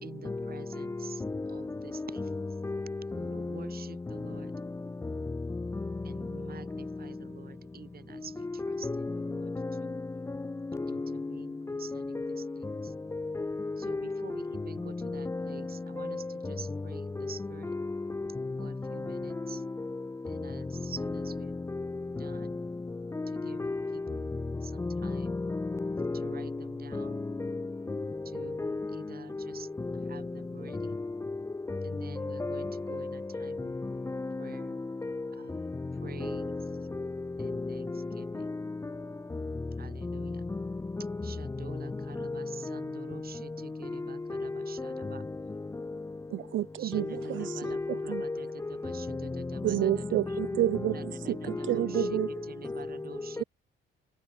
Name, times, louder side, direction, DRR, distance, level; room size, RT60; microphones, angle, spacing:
voice 1, 0.0-2.4 3.1-4.5 6.0-9.5 9.8-10.0 10.9-12.9 13.8-17.7 18.6-19.6 20.3-21.5 22.2-22.6 23.3-23.6 23.9-24.3 24.6-25.4 26.1-27.3 28.2-29.7 30.1-31.0 31.8-33.7 34.4-34.8 35.3-35.7 36.0-36.5 37.4-38.5 39.8-40.5 41.2-45.2 46.8-50.4 50.9-53.5, right 7 dB, 50° right, 4.5 m, -48 dB
voice 2, 8.6-9.2 9.6-9.7 10.8-11.1 11.7-11.8 12.1-12.4 13.1-14.1 15.1-15.5 16.0-16.2 21.0-21.2 21.7-21.8 23.6-23.9 24.8-26.4 26.9-27.0 27.4-27.6 27.9-28.0 28.6-28.9 31.7-31.8 32.2-33.1 33.5-33.6 34.1-34.3 35.0-35.2 36.2-36.6 37.4-37.6 42.2-42.5 44.3-44.5 47.0-47.1 47.7-48.4 50.3-50.5 51.9-52.3 53.4-53.5, left 3 dB, 15° left, 0.5 m, -33 dB
voice 3, 46.3-47.0 47.3-47.7 48.1-48.2 49.6-52.3, right 14 dB, 75° right, 0.8 m, -29 dB
cardioid pair, 90°, 20 cm